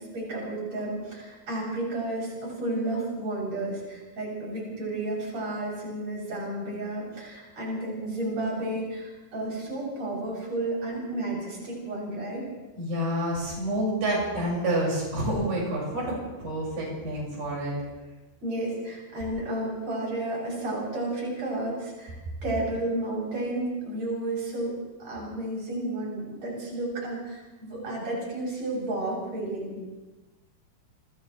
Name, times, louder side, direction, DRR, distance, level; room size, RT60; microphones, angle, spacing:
voice 1, 0.0-12.4 18.4-22.2 22.4-29.9, right 1 dB, 45° right, -4 dB, 9.1 m, -32 dB
voice 2, 12.8-17.8, right 1 dB, 80° right, -4 dB, 7.8 m, -28 dB
30.0 x 26.5 x 3.3 m, 1.1 s
omnidirectional pair, 4.2 m